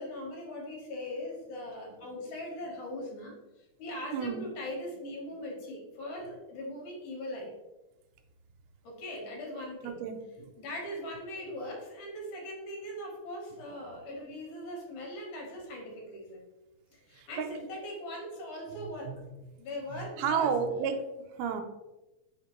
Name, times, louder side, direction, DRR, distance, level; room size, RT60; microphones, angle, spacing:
voice 1, 0.0-7.5 8.8-10.0 10.6-16.4 16.9-19.2 19.6-20.5, left 1 dB, 75° left, -1 dB, 2.5 m, -40 dB
voice 2, 4.1-4.5 9.8-10.5 17.2-17.5 19.1-19.3 19.9-21.0 21.4-21.6, right 6 dB, 85° right, 6 dB, 2.1 m, -32 dB
4.6 x 3.6 x 2.9 m, 1.0 s
omnidirectional pair, 3.7 m